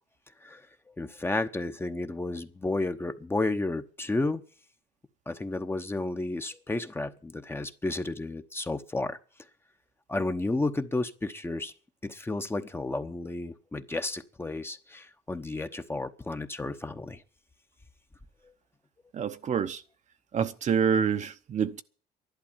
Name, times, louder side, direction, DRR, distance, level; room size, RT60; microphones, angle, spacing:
voice 1, 1.0-4.4 5.3-9.2 10.1-11.7 12.0-17.2, left 2 dB, 15° left, 0.9 m, -32 dB
voice 2, 19.1-19.8 20.3-21.8, right 7 dB, 45° right, 0.9 m, -27 dB
11.5 x 11.5 x 7.3 m
cardioid pair, 110°, 17 cm